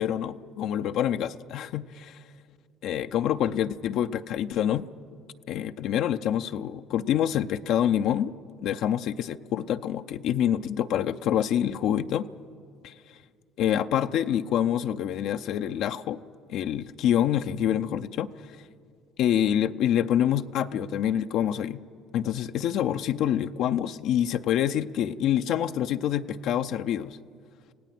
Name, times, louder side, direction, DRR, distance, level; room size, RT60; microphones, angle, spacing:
voice 1, 0.0-2.2 2.8-4.8 5.5-8.3 8.6-12.3 12.8-12.9 13.6-16.2 16.5-18.3 19.2-21.8 22.1-27.2, left 10 dB, 70° left, 9 dB, 0.5 m, -26 dB
25.5 x 17.0 x 6.0 m, 2.3 s
hypercardioid pair, 65°, 0 cm